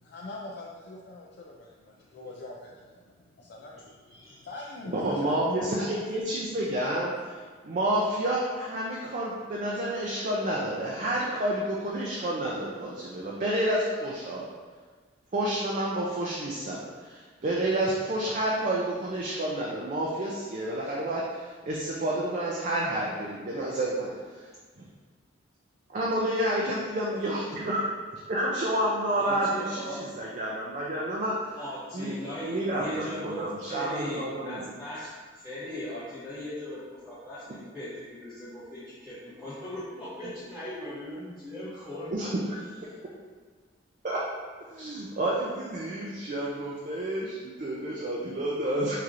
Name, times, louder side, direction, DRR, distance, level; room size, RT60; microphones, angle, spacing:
voice 1, 0.0-6.5 6.8-6.9, left 2 dB, 55° left, -3 dB, 0.3 m, -43 dB
voice 2, 3.8-4.7 27.1-27.2 29.2-30.0 31.6-42.3 42.9-43.0, left 1 dB, 5° right, -14 dB, 0.8 m, -39 dB
voice 3, 4.8-7.4 7.6-14.5 15.3-24.1 25.9-27.8 28.3-31.6 31.9-32.2 32.5-34.6 42.1-42.3 44.0-44.2 44.7-49.0, right 1 dB, 40° right, -4 dB, 0.4 m, -29 dB
4.7 x 2.8 x 2.5 m, 1.5 s
head